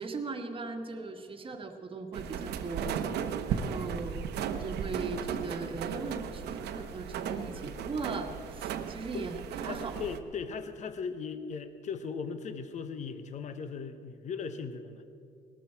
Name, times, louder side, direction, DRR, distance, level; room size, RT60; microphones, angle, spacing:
voice 1, 0.0-2.9 3.5-4.2 4.6-10.1, right 3 dB, 30° right, 5 dB, 1.5 m, -38 dB
sound 1, 2.1-10.2, right 7 dB, 75° right, 0.9 m, -36 dB
voice 2, 9.1-15.0, left 5 dB, 45° left, 10 dB, 0.9 m, -38 dB
19.5 x 13.5 x 4.5 m, 2.4 s
cardioid pair, 110°, 17 cm